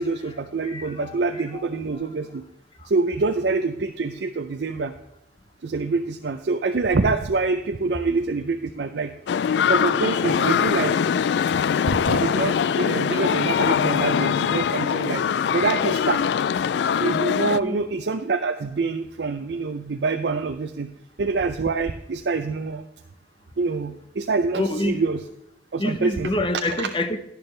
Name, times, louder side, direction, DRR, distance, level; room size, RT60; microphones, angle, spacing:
voice 1, 0.0-2.4 2.9-4.9 5.6-9.1 9.7-11.0 11.9-15.2 15.5-16.2 17.0-20.9 21.2-22.8 23.6-25.2 25.7-26.3 26.8-26.9, right 4 dB, 65° right, 7 dB, 0.5 m, -25 dB
voice 2, 0.6-1.2 1.5-1.7 2.8-2.9 17.6-17.9 24.5-25.0 25.8-27.2, left 1 dB, 30° left, 9 dB, 0.8 m, -27 dB
sound 1, 9.3-17.6, left 7 dB, 70° left, 0.3 m, -22 dB
11.0 x 11.0 x 3.3 m, 0.88 s
head